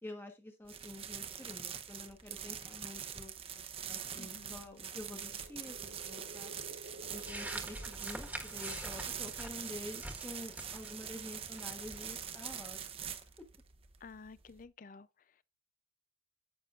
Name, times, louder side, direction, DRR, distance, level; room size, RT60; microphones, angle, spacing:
voice 1, 0.0-3.3 3.9-6.5 7.1-13.1, left 1 dB, 10° left, 1.1 m, -48 dB
sound 1, 0.7-14.6, right 8 dB, 30° right, 0.8 m, -44 dB
voice 2, 4.2-4.8 14.0-15.1, left 4 dB, 45° left, 0.5 m, -52 dB
sound 2, 4.9-9.0, right 2 dB, 85° right, 0.9 m, -53 dB
sound 3, 7.0-12.1, right 1 dB, 10° right, 1.4 m, -46 dB
10.0 x 8.3 x 2.5 m
head